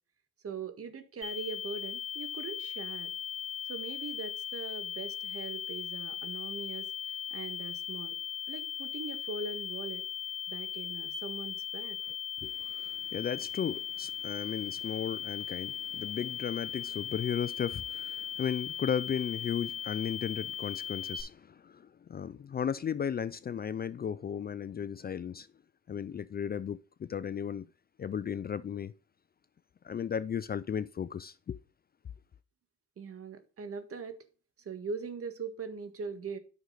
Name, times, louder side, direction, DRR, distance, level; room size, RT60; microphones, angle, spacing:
voice 1, 0.4-3.1 3.7-6.9 7.3-8.2 8.5-10.1 10.5-12.0 33.0-34.3 34.6-36.4, right 5 dB, 50° right, 1.7 m, -41 dB
sound 1, 1.2-21.2, left 9 dB, 5° right, 4.6 m, -38 dB
voice 2, 12.4-25.5 25.9-27.7 28.0-28.9 29.8-31.6, left 8 dB, 30° left, 0.4 m, -35 dB
9.7 x 6.4 x 3.9 m
cardioid pair, 90°, 30 cm